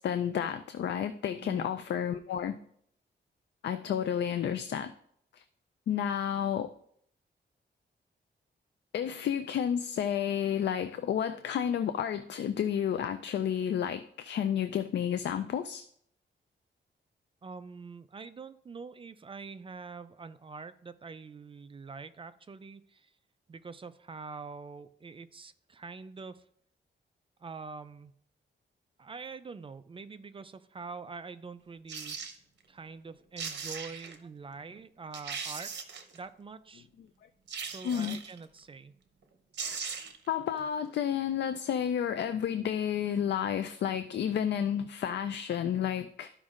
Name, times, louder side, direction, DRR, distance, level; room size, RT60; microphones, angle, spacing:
voice 1, 0.0-2.6 3.6-4.9 5.3-5.4 5.9-6.7 8.9-15.8 37.8-38.2 40.3-46.3, left 9 dB, 65° left, 10 dB, 0.4 m, -31 dB
voice 2, 17.4-23.1 23.5-26.4 27.4-28.1 29.0-32.3 32.7-35.7 36.1-36.9 37.6-38.9, right 4 dB, 30° right, 12 dB, 0.3 m, -45 dB
sound 1, 31.9-32.4 33.1-33.2 33.4-34.2 34.7-34.8 35.1-36.2 37.5-38.4 39.2-39.3 39.5-40.3 40.6-40.7, right 6 dB, 65° right, 0.9 m, -39 dB
13.0 x 5.2 x 2.5 m, 0.68 s
wide cardioid pair, 140°, 19 cm